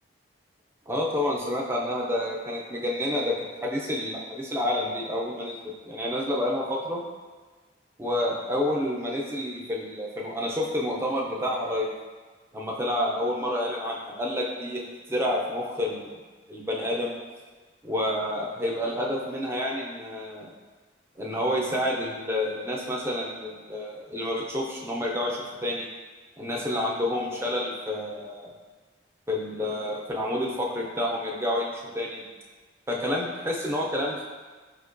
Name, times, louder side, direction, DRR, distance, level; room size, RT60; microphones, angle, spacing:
voice 1, 0.9-3.3 3.6-7.0 8.0-11.9 12.5-16.1 16.5-17.2 17.8-20.5 21.2-25.9 26.4-28.5 29.3-32.2 32.9-34.2, left 1 dB, 15° right, -2 dB, 0.3 m, -29 dB
5.0 x 2.1 x 2.4 m, 1.4 s
head